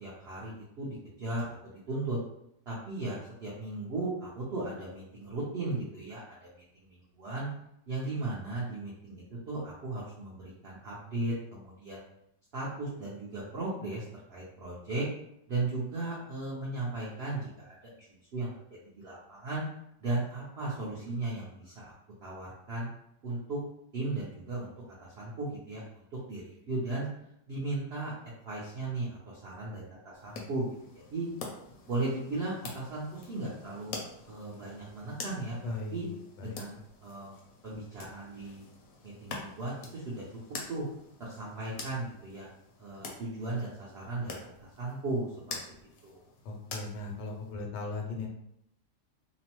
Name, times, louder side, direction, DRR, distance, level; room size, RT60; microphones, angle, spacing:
voice 1, 0.0-2.2 2.7-7.5 7.9-12.0 12.5-15.1 15.5-18.5 18.9-19.6 20.0-21.9 22.2-22.9 23.2-23.6 23.9-27.1 27.5-28.1 28.4-30.7 30.9-31.3 31.9-33.9 34.3-36.1 36.4-37.3 37.6-38.6 39.0-40.2 40.7-40.9 41.2-42.5 42.8-45.6 46.0-46.3, right 2 dB, 65° right, -6 dB, 0.6 m, -36 dB
sound 1, 30.1-47.5, left 4 dB, 65° left, 0.9 m, -47 dB
voice 2, 35.6-36.6 46.4-48.3, left 3 dB, 85° left, 1 dB, 1.3 m, -38 dB
2.9 x 2.0 x 2.9 m, 0.76 s
omnidirectional pair, 1.8 m